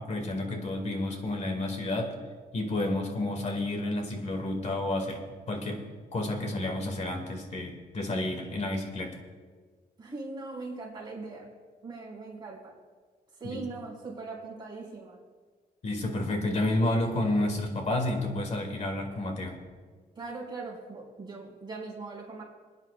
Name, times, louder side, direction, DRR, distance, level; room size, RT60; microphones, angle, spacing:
voice 1, 0.0-2.1 2.5-5.2 5.5-5.8 6.1-9.2 13.4-13.6 15.8-19.6, left 1 dB, 45° left, 3 dB, 2.2 m, -30 dB
voice 2, 10.0-11.5 11.8-12.8 13.3-15.2 20.1-22.4, right 3 dB, 25° right, -5 dB, 4.4 m, -40 dB
27.5 x 9.6 x 2.5 m, 1.5 s
wide cardioid pair, 145°, 16 cm